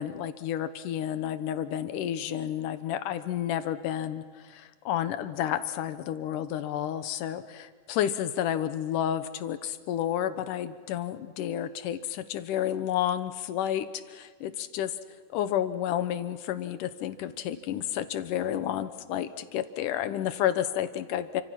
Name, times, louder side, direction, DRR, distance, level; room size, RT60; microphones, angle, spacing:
voice 1, 0.0-14.9 15.3-21.4, left 10 dB, 90° left, 12 dB, 2.6 m, -31 dB
29.5 x 25.0 x 5.9 m, 1.5 s
omnidirectional pair, 3.6 m